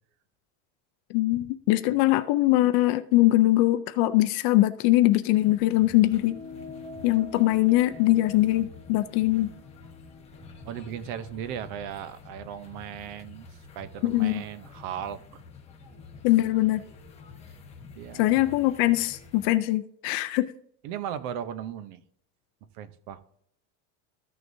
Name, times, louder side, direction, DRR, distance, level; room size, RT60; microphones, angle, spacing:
voice 1, 1.1-6.4 7.0-9.5 14.0-14.4 16.2-16.8 18.1-20.5, left 17 dB, 55° left, 0.5 m, -22 dB
sound 1, 5.3-19.5, left 4 dB, 15° left, 1.2 m, -48 dB
sound 2, 6.1-10.9, left 3 dB, 85° right, 2.6 m, -46 dB
voice 2, 10.6-13.5 13.7-15.4 17.9-18.3 20.8-22.0 22.7-23.2, right 9 dB, 60° right, 0.8 m, -37 dB
14.0 x 6.3 x 2.7 m
cardioid pair, 170°, 36 cm